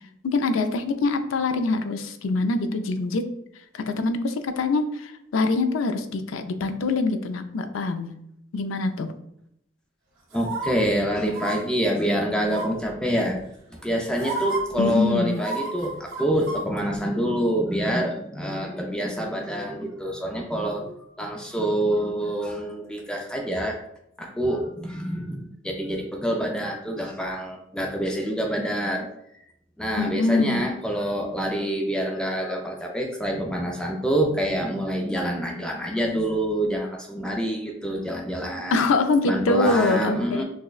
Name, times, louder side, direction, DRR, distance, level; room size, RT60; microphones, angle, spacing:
voice 1, 0.2-3.3 3.7-8.1 8.5-9.1 14.8-15.4 30.0-30.6 38.7-40.4, left 3 dB, 85° left, 8 dB, 0.4 m, -24 dB
voice 2, 10.3-13.4 13.8-23.8 24.2-29.1 29.8-38.9 39.2-40.4, equal, 5° left, 0 dB, 0.4 m, -26 dB
sound 1, 10.3-10.7 11.3-11.5 12.5-12.9 13.7-13.8 14.2-14.6 15.3-16.6 16.9-17.0, right 2 dB, 85° right, 1.3 m, -31 dB
6.0 x 2.1 x 2.3 m, 0.77 s
head